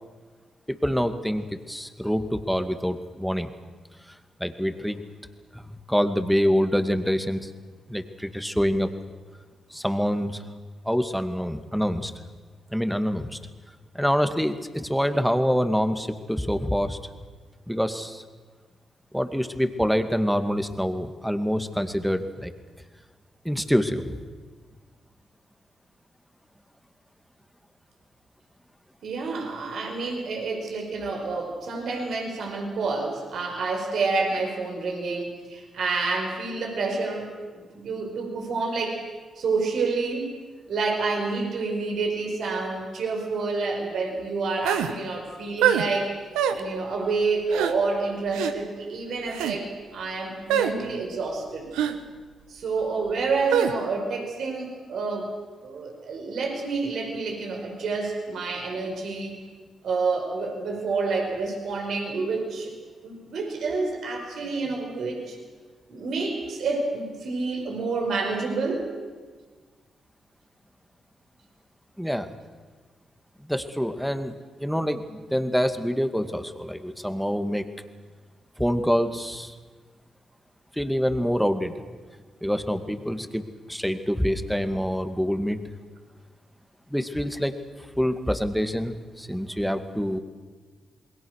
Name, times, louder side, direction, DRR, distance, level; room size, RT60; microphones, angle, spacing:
voice 1, 0.7-3.5 4.4-5.0 5.5-7.5 7.9-8.9 9.7-10.5 10.8-12.1 12.7-13.4 13.9-17.0 17.7-18.2 19.1-22.5 23.4-24.1 72.0-72.3 73.4-77.7 78.6-79.6 80.7-81.8 82.4-85.6 86.9-87.6 88.0-90.2, equal, ahead, 8 dB, 2.2 m, -26 dB
voice 2, 29.0-39.0 39.4-40.3 40.7-46.1 46.5-51.7 52.5-55.3 55.6-59.4 59.8-62.7 63.0-65.4 65.9-68.9, right 3 dB, 70° right, 2 dB, 5.4 m, -28 dB
sound 1, 44.6-44.9 45.6-45.9 46.3-46.6 47.5-47.7 48.3-48.5 49.3-49.6 50.5-50.7 51.7-52.0 53.5-53.7, right 9 dB, 85° right, 1.2 m, -23 dB
27.5 x 21.0 x 6.6 m, 1.4 s
supercardioid pair, 50°, 0 cm